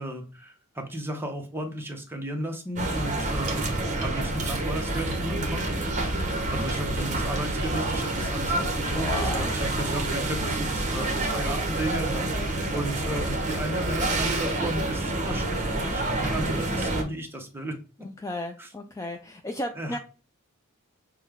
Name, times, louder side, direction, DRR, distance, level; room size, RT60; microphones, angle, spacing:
voice 1, 0.0-3.8 4.0-6.1 6.5-17.8 18.6-18.7 19.8-20.0, right 1 dB, 10° right, 3 dB, 0.8 m, -34 dB
sound 1, 2.7-17.0, right 2 dB, 35° right, 1.0 m, -28 dB
voice 2, 6.1-6.7 8.8-9.5 12.3-12.9 16.2-17.2 18.0-20.0, left 1 dB, 15° left, 4 dB, 0.3 m, -36 dB
6.2 x 2.2 x 3.6 m, 0.35 s
head